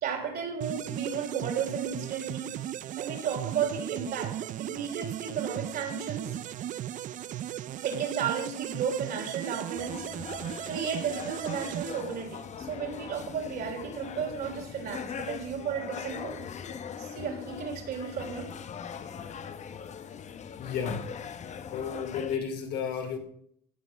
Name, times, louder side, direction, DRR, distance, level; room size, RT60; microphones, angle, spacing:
voice 1, 0.0-2.6 3.0-6.4 7.8-10.1 10.7-16.5 17.0-18.5, right 7 dB, 70° right, 2 dB, 3.4 m, -34 dB
sound 1, 0.6-12.7, right 12 dB, 50° right, 0.4 m, -37 dB
sound 2, 9.8-22.4, left 7 dB, 45° left, 0.8 m, -41 dB
voice 2, 20.5-21.1 21.6-23.2, left 7 dB, 80° left, 4 dB, 2.7 m, -33 dB
16.5 x 6.0 x 6.0 m, 0.68 s
cardioid pair, 110°, 17 cm